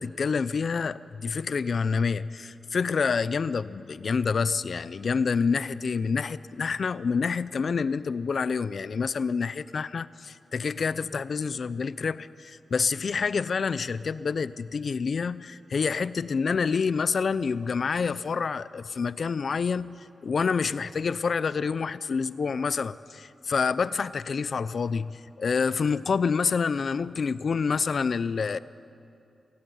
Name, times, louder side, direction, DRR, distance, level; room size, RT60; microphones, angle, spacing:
voice 1, 0.0-28.6, left 5 dB, 50° left, 16 dB, 0.6 m, -27 dB
25.5 x 16.5 x 9.3 m, 2.7 s
wide cardioid pair, 150°, 0 cm